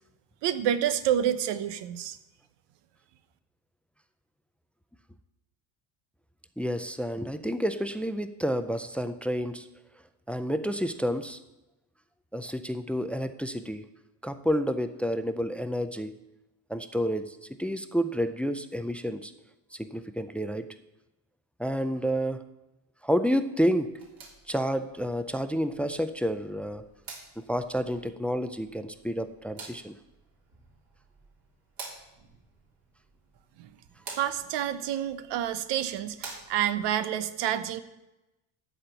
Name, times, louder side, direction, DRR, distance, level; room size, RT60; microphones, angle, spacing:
voice 1, 0.4-2.2 33.6-33.7 34.2-37.8, right 10 dB, 65° right, 12 dB, 1.0 m, -28 dB
voice 2, 6.6-9.7 10.3-11.4 12.3-13.9 14.2-16.1 16.7-19.3 19.7-20.7 21.6-22.5 23.0-23.9 24.5-26.9 27.5-30.0, equal, 5° left, 10 dB, 0.4 m, -29 dB
sound 1, 23.8-36.9, right 4 dB, 50° right, 3.2 m, -49 dB
13.0 x 4.4 x 8.1 m, 0.97 s
cardioid pair, 105°, 45 cm